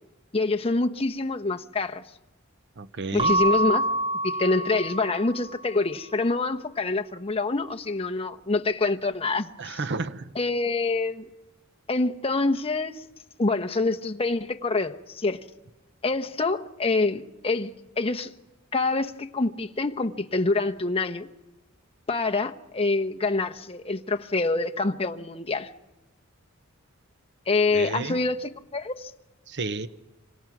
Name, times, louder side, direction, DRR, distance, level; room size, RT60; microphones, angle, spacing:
voice 1, 0.3-2.0 3.1-3.9 4.2-9.8 10.3-11.3 11.9-13.0 13.4-15.4 16.0-17.7 18.0-18.3 18.7-21.3 22.1-25.7 27.5-29.1, left 3 dB, 30° left, 1.0 m, -26 dB
voice 2, 2.8-3.4 9.6-10.3 27.7-28.2 29.5-29.9, right 3 dB, 55° right, 0.9 m, -32 dB
Keyboard (musical) / Bell, 3.2-5.6, right 1 dB, 25° right, 0.8 m, -26 dB
26.5 x 25.5 x 6.1 m
head